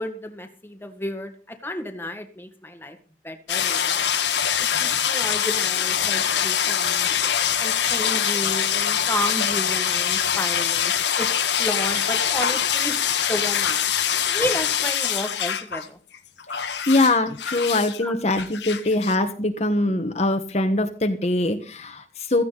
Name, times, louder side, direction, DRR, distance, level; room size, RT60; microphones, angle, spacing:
voice 1, 0.0-3.0 3.2-4.2 4.8-7.1 7.6-11.3 11.6-13.9 14.3-16.0 18.0-18.2, left 1 dB, 10° left, 6 dB, 1.8 m, -32 dB
sound 1, 3.5-15.9 16.1-18.0 18.4-19.2, left 9 dB, 85° left, 1.7 m, -24 dB
voice 2, 16.9-22.4, left 2 dB, 40° left, 6 dB, 1.4 m, -22 dB
16.0 x 15.0 x 4.0 m, 0.37 s
head